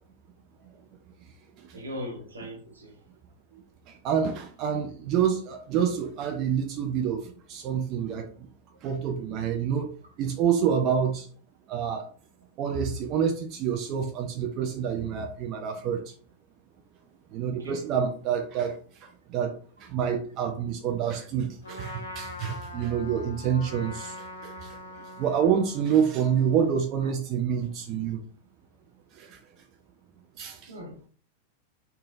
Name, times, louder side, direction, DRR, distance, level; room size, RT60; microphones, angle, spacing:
voice 1, 1.7-3.0 3.5-3.6 14.6-14.7 17.5-17.8 27.0-27.1 30.7-31.0, equal, 75° right, 0.7 m, -39 dB
voice 2, 3.9-8.5 8.8-9.9 10.2-11.3 11.7-12.1 12.6-16.1 17.3-28.2 29.1-29.4 30.4-30.7, right 8 dB, 40° right, 0.4 m, -28 dB
Trumpet, 21.6-26.9, left 2 dB, 70° left, 0.6 m, -43 dB
3.2 x 2.2 x 2.5 m
figure-of-eight pair, 90°, 0 cm